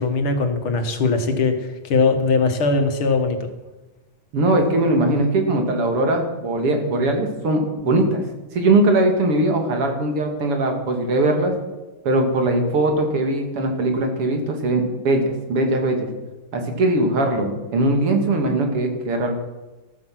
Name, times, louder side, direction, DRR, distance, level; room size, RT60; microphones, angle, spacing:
voice 1, 0.0-3.4, left 4 dB, 70° left, 6 dB, 2.5 m, -20 dB
voice 2, 4.3-8.2 8.5-11.5 12.0-16.1 16.5-19.4, right 2 dB, 85° right, 4 dB, 3.4 m, -20 dB
14.0 x 13.5 x 6.1 m, 1.1 s
omnidirectional pair, 2.4 m